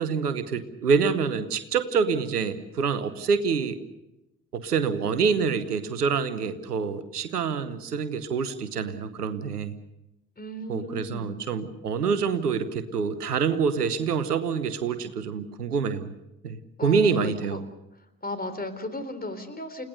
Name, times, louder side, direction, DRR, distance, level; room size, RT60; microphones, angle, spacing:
voice 1, 0.0-3.8 4.5-9.7 10.7-16.1 16.4-17.6, right 6 dB, 85° right, 14 dB, 1.1 m, -26 dB
voice 2, 10.4-11.3 16.8-17.6 18.2-19.8, left 1 dB, 20° left, 9 dB, 3.8 m, -35 dB
30.0 x 17.0 x 6.7 m, 0.91 s
figure-of-eight pair, 45°, 45 cm